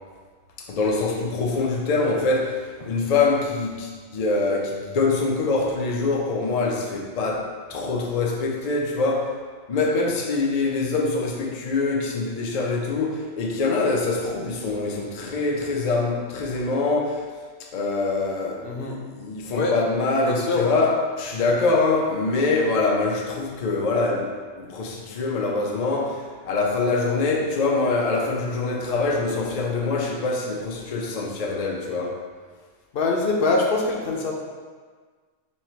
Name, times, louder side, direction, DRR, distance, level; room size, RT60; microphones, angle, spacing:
voice 1, 0.6-9.4 9.7-17.3 17.6-32.2, left 3 dB, 85° left, -1 dB, 0.3 m, -24 dB
voice 2, 18.6-19.0 19.5-19.7 20.2-20.7 32.9-34.3, left 3 dB, 60° left, -1 dB, 0.7 m, -23 dB
4.2 x 2.4 x 4.3 m, 1.5 s
omnidirectional pair, 1.3 m